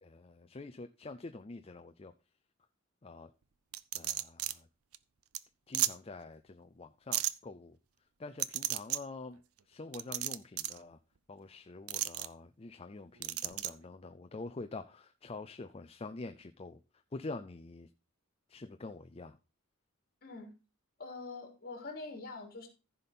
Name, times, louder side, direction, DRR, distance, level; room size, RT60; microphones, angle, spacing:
voice 1, 0.0-2.1 3.0-3.3 3.9-4.7 5.7-7.8 8.2-9.4 9.7-11.0 11.3-16.8 17.1-17.9 18.5-19.4, left 3 dB, 25° left, 0.5 m, -46 dB
sound 1, 3.7-4.5 4.9-5.0 5.3-5.4 5.7-5.9 7.1-7.3 8.4-9.0 9.9-10.8 11.9-12.3 13.2-13.7, right 14 dB, 75° right, 0.6 m, -33 dB
voice 2, 20.2-20.5 21.0-22.7, left 3 dB, 45° left, 3.1 m, -44 dB
14.5 x 5.4 x 4.2 m
head